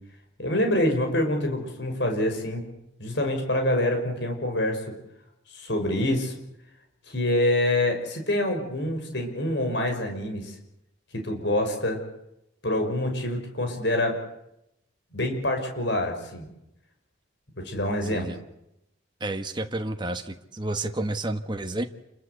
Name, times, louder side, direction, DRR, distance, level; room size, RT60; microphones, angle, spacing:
voice 1, 0.4-2.6 3.0-4.9 5.5-6.4 7.1-10.6 11.1-12.0 12.6-14.2 15.1-16.5 17.6-18.3, left 1 dB, 55° left, 4 dB, 5.9 m, -26 dB
voice 2, 19.2-21.8, right 2 dB, 20° right, 5 dB, 1.4 m, -30 dB
28.0 x 22.5 x 8.4 m, 0.83 s
head